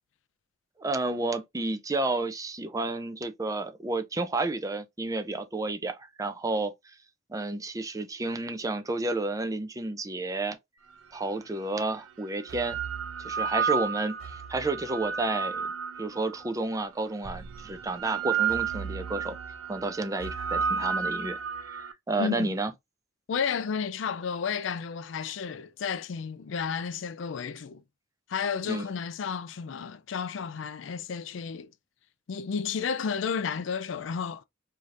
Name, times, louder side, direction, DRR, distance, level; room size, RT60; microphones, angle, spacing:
voice 1, 0.8-6.7 7.3-10.6 11.1-12.8 13.2-15.7 16.0-19.4 19.7-22.7 28.7-28.8, right 2 dB, 15° right, 0.5 m, -31 dB
sound 1, 11.2-11.3 12.2-16.5 17.2-21.9, right 6 dB, 85° right, 0.5 m, -32 dB
voice 2, 22.2-22.6 23.3-27.8 28.3-31.7 32.3-34.4, left 6 dB, 70° left, 0.4 m, -32 dB
4.8 x 2.8 x 2.5 m
head